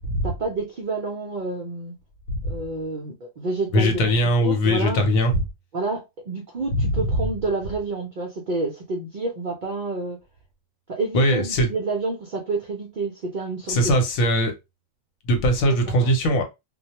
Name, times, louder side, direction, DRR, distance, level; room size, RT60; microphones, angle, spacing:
voice 1, 0.2-2.0 2.4-4.1 4.4-5.0 5.7-10.2 10.9-14.0 15.7-16.1, right 3 dB, 65° right, 0.5 m, -29 dB
voice 2, 3.7-5.3 11.1-11.7 13.7-14.5 15.3-16.4, equal, 80° left, 1.1 m, -20 dB
2.3 x 2.1 x 2.8 m
omnidirectional pair, 1.4 m